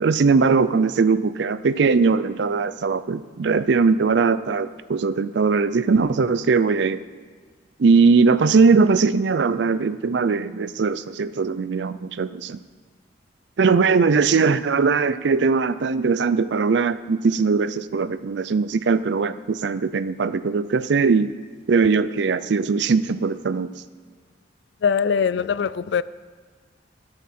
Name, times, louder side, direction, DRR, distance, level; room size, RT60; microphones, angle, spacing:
voice 1, 0.0-7.0 7.8-12.6 13.6-21.3 21.7-23.7, right 4 dB, 65° right, 14 dB, 0.4 m, -20 dB
voice 2, 24.8-26.0, left 6 dB, 60° left, 17 dB, 0.3 m, -22 dB
13.5 x 8.9 x 4.3 m, 1.5 s
head